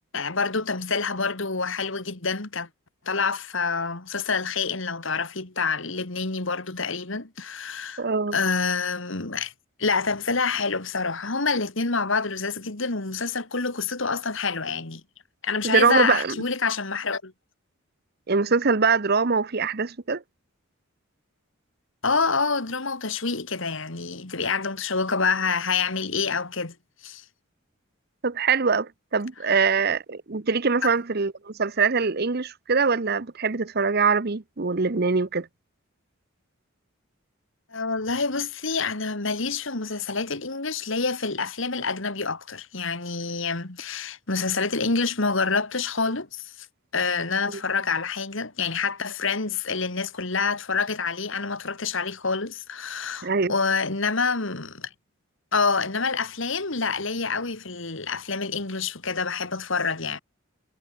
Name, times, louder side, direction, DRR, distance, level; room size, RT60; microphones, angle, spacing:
voice 1, 0.1-2.7 3.1-8.1 8.3-9.5 9.8-15.0 15.4-17.3 22.0-26.7 27.0-27.2 29.4-29.7 37.7-46.5 46.9-54.9 55.5-60.2, left 4 dB, 60° left, 2.2 m, -27 dB
voice 2, 8.0-8.4 15.6-16.4 18.3-20.2 28.2-35.5 47.5-47.6 53.2-53.5, right 5 dB, 45° right, 0.8 m, -23 dB
head